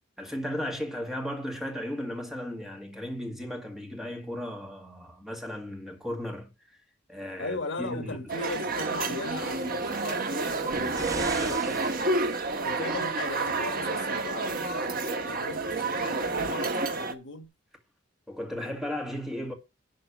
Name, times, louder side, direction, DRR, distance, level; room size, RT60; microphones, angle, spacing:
voice 1, 0.2-6.8 7.1-8.2 12.9-13.0 18.3-19.5, equal, ahead, 2.2 m, -35 dB
voice 2, 7.4-12.1 12.6-17.5, left 3 dB, 70° left, 1.6 m, -38 dB
sound 1, 8.3-17.1, right 3 dB, 50° right, 1.5 m, -29 dB
sound 2, 9.7-12.9 13.8-13.9, right 2 dB, 20° right, 1.3 m, -41 dB
11.5 x 4.0 x 7.1 m
head